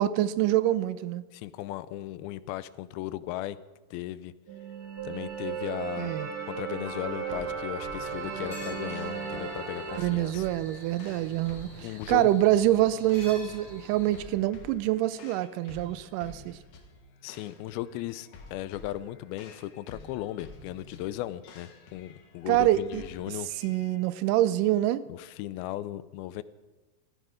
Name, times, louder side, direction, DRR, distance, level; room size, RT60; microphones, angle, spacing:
voice 1, 0.0-1.2 6.0-6.3 10.0-16.6 22.5-23.0 23.6-25.0, right 14 dB, 80° right, 1.9 m, -26 dB
voice 2, 1.3-3.6 3.9-4.3 5.0-6.2 6.5-10.5 11.8-12.3 17.2-23.5 25.1-26.4, left 14 dB, 90° left, 2.5 m, -37 dB
sound 1, 4.5-10.0, right 6 dB, 35° right, 1.5 m, -35 dB
sound 2, 7.3-24.0, left 2 dB, 65° left, 3.0 m, -50 dB
sound 3, 8.0-14.2, left 1 dB, 30° left, 4.0 m, -48 dB
14.5 x 14.0 x 5.0 m
omnidirectional pair, 4.3 m